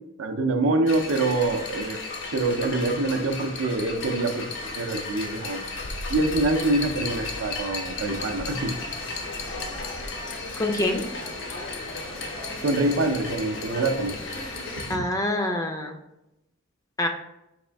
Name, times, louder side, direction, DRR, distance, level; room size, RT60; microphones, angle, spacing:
voice 1, 0.2-2.0 2.3-4.5 4.7-5.6 6.1-8.7 12.6-14.2, right 2 dB, 80° right, 6 dB, 0.5 m, -25 dB
sound 1, 0.9-15.0, left 3 dB, 65° left, 0.5 m, -35 dB
sound 2, 8.0-14.8, left 1 dB, 85° left, 1.0 m, -40 dB
voice 2, 10.6-11.0 14.9-16.0 17.0-17.1, left 1 dB, 15° left, 4 dB, 0.4 m, -25 dB
4.1 x 2.5 x 3.3 m, 0.87 s
head